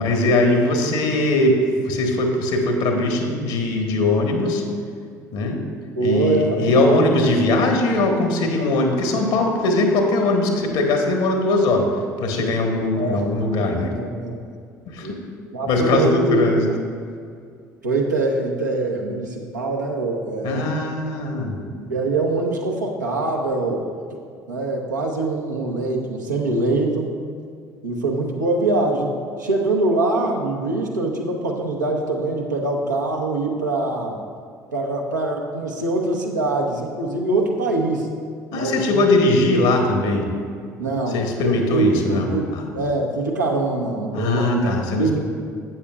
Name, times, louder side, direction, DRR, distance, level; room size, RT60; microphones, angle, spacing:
voice 1, 0.0-4.6 5.3-5.6 6.0-11.9 12.2-13.9 14.9-15.2 15.7-16.6 20.4-21.6 38.5-40.3 41.1-42.7 44.1-45.2, left 2 dB, 65° left, 3 dB, 1.3 m, -20 dB
voice 2, 6.0-6.8 13.0-14.4 15.0-15.2 15.5-16.4 17.8-20.7 21.7-23.9 24.5-27.2 27.8-29.1 29.4-34.2 34.7-38.1 38.5-39.0 40.8-44.7 45.0-45.2, right 2 dB, 90° right, -1 dB, 0.9 m, -23 dB
12.0 x 8.6 x 2.4 m, 2.2 s
figure-of-eight pair, 55°, 9 cm